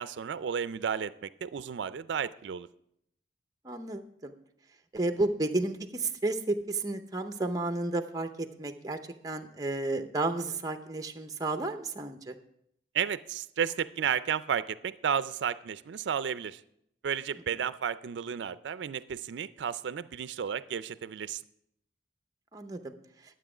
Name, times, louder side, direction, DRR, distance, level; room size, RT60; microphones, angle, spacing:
voice 1, 0.0-2.7 12.9-16.6 17.0-21.4, right 7 dB, 75° right, 15 dB, 0.4 m, -32 dB
voice 2, 3.6-4.3 4.9-9.0 9.2-12.4 22.5-22.9, right 2 dB, 20° right, 8 dB, 0.6 m, -32 dB
11.5 x 7.6 x 4.9 m, 0.74 s
head